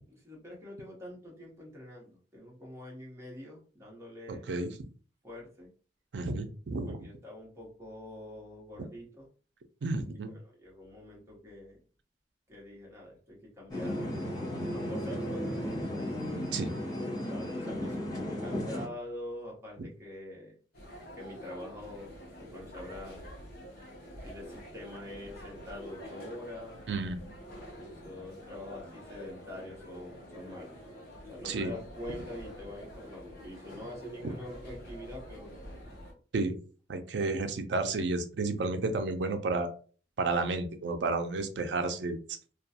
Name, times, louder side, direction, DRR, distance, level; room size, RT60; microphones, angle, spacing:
voice 1, 0.1-4.7 5.2-5.7 6.9-9.3 10.4-11.8 12.5-16.1 17.3-20.6 21.1-22.1 22.4-23.3 24.1-26.8 27.8-30.8 31.2-35.5, left 1 dB, 15° right, -3 dB, 0.9 m, -45 dB
voice 2, 4.3-4.7 6.1-7.0 9.8-10.3 16.5-16.8 26.9-27.3 31.4-31.7 36.3-36.6 36.9-39.7 40.2-42.2, right 3 dB, 75° right, 7 dB, 0.4 m, -31 dB
sound 1, 13.7-18.9, equal, 20° left, 0.9 m, -35 dB
sound 2, 20.7-36.1, equal, 55° left, 0.8 m, -47 dB
2.3 x 2.2 x 2.7 m, 0.40 s
head